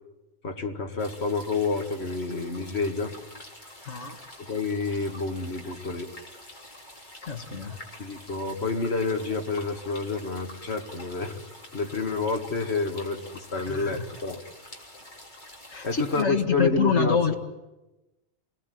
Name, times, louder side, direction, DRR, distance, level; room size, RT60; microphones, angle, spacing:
voice 1, 0.4-3.1 4.4-6.1 8.0-11.4 11.7-14.4 15.8-17.3, left 3 dB, 65° left, 4 dB, 2.3 m, -29 dB
sound 1, 1.0-16.2, left 1 dB, 40° left, 3.8 m, -47 dB
voice 2, 3.8-4.2 7.2-7.8 13.7-14.1 15.7-17.3, left 6 dB, 90° left, 3 dB, 2.0 m, -26 dB
28.0 x 20.5 x 9.4 m, 1.0 s
omnidirectional pair, 1.2 m